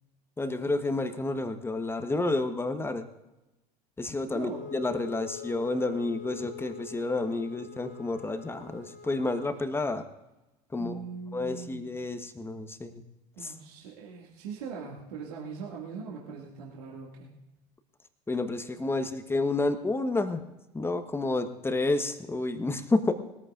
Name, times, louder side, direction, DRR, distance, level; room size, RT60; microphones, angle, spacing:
voice 1, 0.4-3.1 4.0-10.1 10.7-11.0 11.3-13.0 13.4-13.5 18.3-20.4 20.7-23.1, left 2 dB, 10° left, 9 dB, 1.2 m, -30 dB
voice 2, 4.3-4.6 10.8-11.8 13.4-17.3, right 5 dB, 70° right, -2 dB, 2.2 m, -41 dB
Wind instrument woodwind instrument, 4.5-9.8, left 7 dB, 40° left, 1.5 m, -44 dB
21.0 x 14.0 x 2.5 m, 1.0 s
figure-of-eight pair, 80°, 21 cm